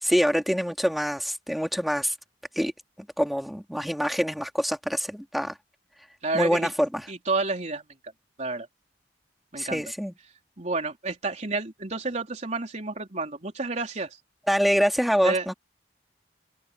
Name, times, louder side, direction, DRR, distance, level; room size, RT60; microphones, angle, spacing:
voice 1, 0.0-2.1 2.6-2.7 3.2-5.5 6.3-7.1 9.6-10.1 14.5-15.5, equal, ahead, 2.1 m, -25 dB
voice 2, 6.2-6.7 7.1-7.8 8.4-8.7 9.5-9.8 10.6-14.2 15.2-15.5, right 3 dB, 40° right, 3.9 m, -30 dB
head